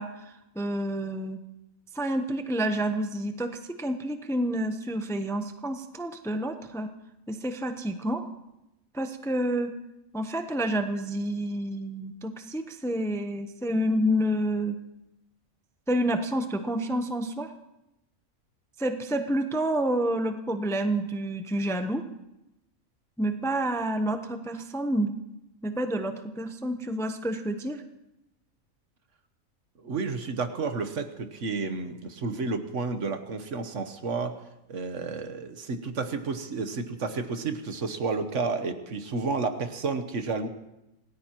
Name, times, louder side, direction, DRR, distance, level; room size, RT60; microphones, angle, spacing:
voice 1, 0.0-1.4 1.9-6.9 7.3-8.2 8.9-9.7 10.1-14.8 15.9-17.5 18.8-22.1 23.2-25.1 25.6-27.8, right 1 dB, 5° left, 7 dB, 0.6 m, -29 dB
voice 2, 29.8-34.4 34.7-40.5, right 4 dB, 65° right, 8 dB, 1.4 m, -31 dB
27.5 x 17.5 x 3.0 m, 0.91 s
omnidirectional pair, 1.4 m